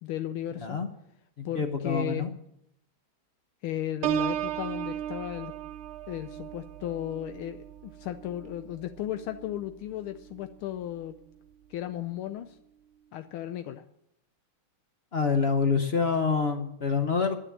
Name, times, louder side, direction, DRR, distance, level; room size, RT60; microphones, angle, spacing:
voice 1, 0.0-0.8 1.4-2.3 3.6-5.5 6.1-11.1 11.7-12.6 13.1-13.8, left 12 dB, 80° left, 8 dB, 1.5 m, -35 dB
voice 2, 1.4-2.3 15.1-17.4, left 5 dB, 60° left, 6 dB, 0.6 m, -26 dB
Piano, 4.0-9.6 10.1-10.5, right 11 dB, 85° right, 1.5 m, -35 dB
10.0 x 9.7 x 8.4 m, 0.79 s
omnidirectional pair, 2.3 m